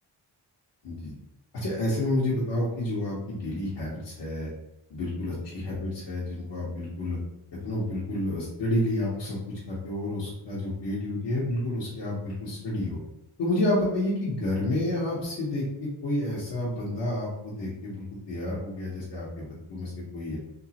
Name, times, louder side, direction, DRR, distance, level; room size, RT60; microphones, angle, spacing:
voice 1, 1.5-4.5 4.9-7.2 7.6-9.4 9.7-13.0 13.4-20.4, left 1 dB, 75° left, -8 dB, 1.3 m, -30 dB
3.6 x 3.1 x 2.9 m, 0.85 s
cardioid pair, 80°, 43 cm